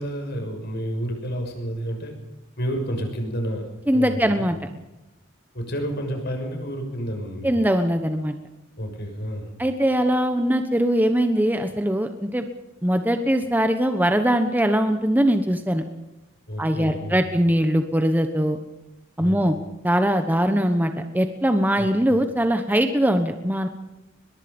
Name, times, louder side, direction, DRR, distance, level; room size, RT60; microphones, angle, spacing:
voice 1, 0.0-2.1 2.6-4.5 5.5-7.6 8.8-9.5 16.5-17.2 19.2-19.4 21.8-22.2, equal, 55° left, 4 dB, 6.3 m, -30 dB
voice 2, 3.9-4.6 7.4-8.3 9.6-12.5 12.8-15.8 16.6-18.6 19.2-19.6 19.8-23.7, equal, 10° right, 7 dB, 1.2 m, -21 dB
23.5 x 21.5 x 5.4 m, 0.99 s
head